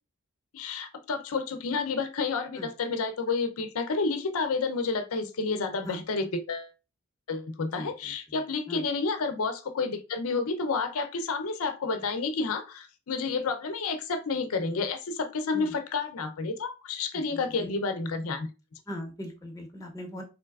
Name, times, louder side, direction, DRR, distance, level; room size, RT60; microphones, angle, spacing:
voice 1, 0.5-6.7 7.3-18.5, left 4 dB, 75° left, 0.5 m, -30 dB
voice 2, 7.6-8.4 8.7-8.8 15.5-15.7 17.1-17.7 18.9-20.2, left 1 dB, 15° left, 0.6 m, -40 dB
3.7 x 3.2 x 2.3 m
head